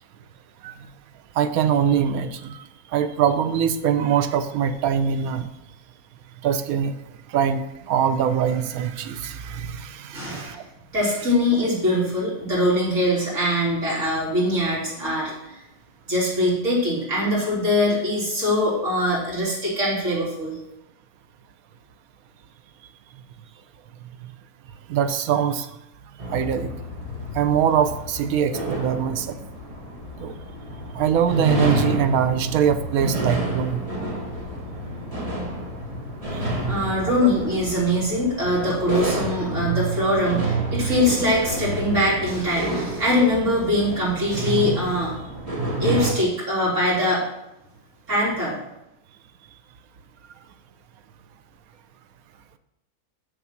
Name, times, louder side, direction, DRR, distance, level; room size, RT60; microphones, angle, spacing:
voice 1, 1.3-2.6 2.9-5.5 6.4-7.0 7.3-10.6 24.9-25.8 26.3-26.7 27.3-29.4 30.2-30.3 30.9-33.8, right 8 dB, 75° right, 10 dB, 1.1 m, -23 dB
voice 2, 10.1-10.6 10.9-15.6 16.1-20.6 36.6-45.2 45.8-47.2 48.1-48.6, left 1 dB, 55° right, -7 dB, 3.9 m, -22 dB
sound 1, 26.2-46.1, right 2 dB, 25° right, 1.9 m, -29 dB
6.8 x 6.7 x 5.8 m, 0.89 s
omnidirectional pair, 1.6 m